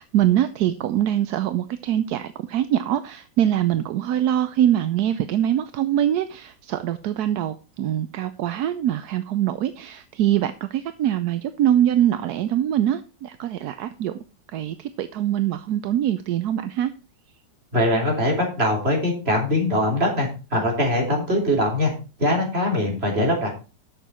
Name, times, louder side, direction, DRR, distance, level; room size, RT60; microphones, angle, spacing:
voice 1, 0.0-14.1 14.5-16.9, right 11 dB, 70° right, 1.1 m, -23 dB
voice 2, 17.7-21.9 22.2-23.5, left 1 dB, 30° right, 3.9 m, -22 dB
12.0 x 6.8 x 4.3 m
omnidirectional pair, 2.0 m